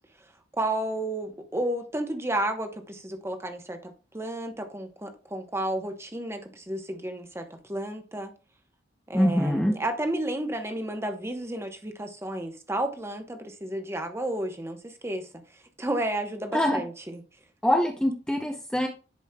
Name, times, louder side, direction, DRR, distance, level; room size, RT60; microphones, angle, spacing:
voice 1, 0.6-8.3 9.1-15.3 15.8-17.2, right 1 dB, 15° right, 1.0 m, -32 dB
voice 2, 9.1-9.8 16.5-16.8 17.6-18.9, equal, 5° left, 0.6 m, -24 dB
10.5 x 5.0 x 2.3 m
head